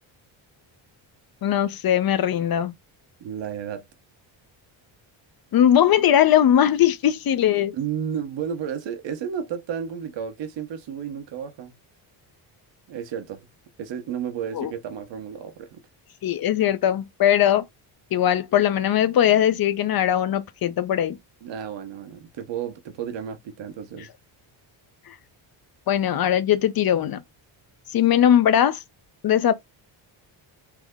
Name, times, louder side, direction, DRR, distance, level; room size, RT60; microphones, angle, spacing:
voice 1, 1.4-2.7 5.5-7.7 14.5-14.7 16.2-17.6 18.1-21.2 25.1-25.2 25.9-27.2 27.9-28.8 29.2-29.5, left 10 dB, 50° left, 0.6 m, -20 dB
voice 2, 3.2-3.9 7.5-11.7 12.9-13.5 13.8-15.8 21.4-24.1, right 8 dB, 60° right, 1.0 m, -32 dB
3.4 x 2.0 x 3.5 m
cardioid pair, 95°, 49 cm